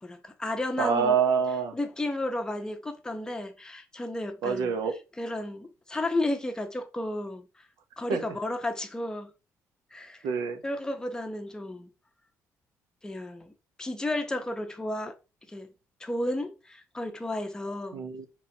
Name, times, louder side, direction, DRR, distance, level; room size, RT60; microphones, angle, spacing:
voice 1, 0.0-1.2 1.7-4.8 5.2-7.7 8.0-9.3 9.9-10.3 10.6-11.9 13.0-13.5 13.8-15.2 15.5-15.7 16.0-18.0, left 1 dB, 10° left, 0.6 m, -33 dB
voice 2, 0.8-1.8 4.4-5.0 8.1-8.2 10.2-10.6 17.9-18.3, right 6 dB, 80° right, 0.7 m, -26 dB
5.6 x 3.0 x 2.7 m
cardioid pair, 145°, 6 cm